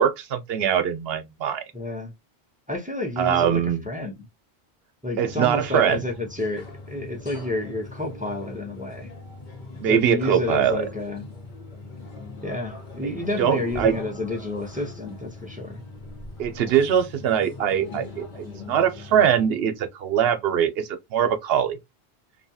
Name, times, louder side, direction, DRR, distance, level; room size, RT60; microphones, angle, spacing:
voice 1, 0.0-1.6 3.2-3.8 5.2-6.0 9.8-10.8 13.4-14.0 16.4-21.8, right 9 dB, 75° right, 0.8 m, -22 dB
voice 2, 1.7-2.1 2.7-4.3 5.0-9.1 9.9-11.3 12.4-15.8, left 2 dB, 10° right, 0.5 m, -30 dB
sound 1, 5.2-19.5, left 2 dB, 50° left, 0.9 m, -40 dB
2.7 x 2.3 x 2.6 m
omnidirectional pair, 1.1 m